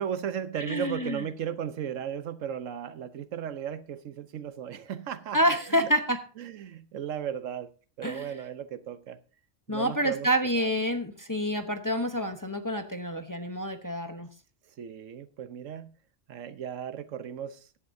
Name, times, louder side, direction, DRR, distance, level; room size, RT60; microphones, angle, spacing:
voice 1, 0.0-5.9 6.4-9.2 9.7-10.3 10.5-10.7 14.8-15.9 16.3-17.8, right 9 dB, 80° right, 1.2 m, -36 dB
voice 2, 0.7-1.2 5.3-6.2 8.0-8.3 9.7-14.3, equal, 20° left, 0.8 m, -28 dB
16.5 x 11.0 x 2.7 m
omnidirectional pair, 1.3 m